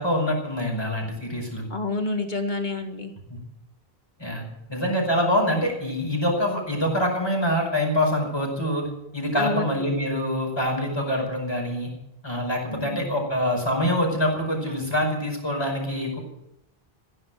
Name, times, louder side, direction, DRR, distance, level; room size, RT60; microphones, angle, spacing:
voice 1, 0.0-1.7 4.2-8.9 9.1-11.9 12.2-16.2, equal, 25° left, 0 dB, 5.4 m, -25 dB
voice 2, 1.7-3.1 9.4-9.8 12.7-13.0, left 3 dB, 50° left, 6 dB, 1.9 m, -28 dB
15.5 x 11.5 x 7.5 m, 0.84 s
omnidirectional pair, 1.0 m